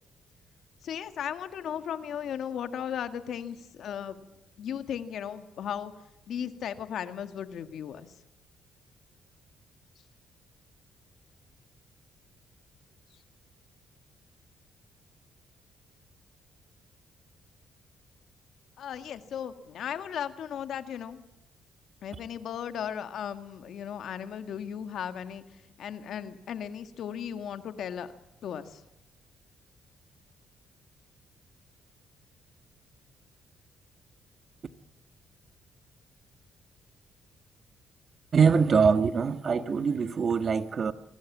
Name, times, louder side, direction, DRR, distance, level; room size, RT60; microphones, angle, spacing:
voice 1, 0.8-4.2 4.6-5.9 6.3-8.1 18.8-21.2 22.0-28.1 28.4-28.8, left 8 dB, 70° left, 1.9 m, -36 dB
voice 2, 38.3-40.9, right 5 dB, 45° right, 1.4 m, -23 dB
24.0 x 17.5 x 7.4 m
cardioid pair, 90°, 0 cm